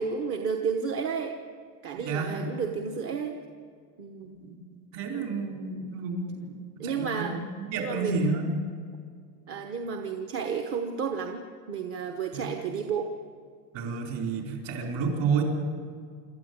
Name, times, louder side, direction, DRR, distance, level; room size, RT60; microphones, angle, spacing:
voice 1, 0.0-1.4 1.8-3.4 4.0-4.4 6.8-7.4 7.8-8.2 9.5-13.1, right 6 dB, 30° right, 4 dB, 1.1 m, -32 dB
voice 2, 2.1-2.4 4.2-7.4 7.7-8.5 12.3-12.5 13.7-15.4, right 4 dB, 45° right, 2 dB, 4.5 m, -31 dB
26.5 x 13.0 x 9.5 m, 2.1 s
cardioid pair, 170°, 46 cm